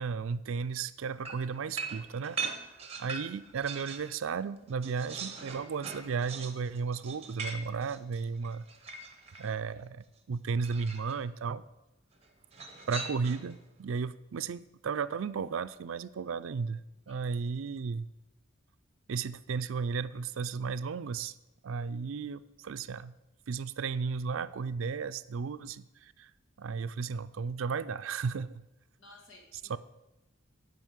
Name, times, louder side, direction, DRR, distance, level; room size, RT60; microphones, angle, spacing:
voice 1, 0.0-2.4 3.0-8.7 9.4-11.6 12.9-16.8 17.1-18.1 19.1-21.3 21.6-23.1 23.5-26.3 26.6-28.6 29.7-29.8, right 5 dB, 80° right, 15 dB, 0.4 m, -34 dB
sound 1, 1.2-4.1 4.5-9.6 10.6-11.2 12.5-13.6, right 4 dB, 30° right, 0.9 m, -41 dB
voice 2, 26.7-27.1 29.0-29.8, left 2 dB, 70° left, 1 dB, 2.4 m, -57 dB
9.2 x 5.3 x 8.0 m, 0.94 s
head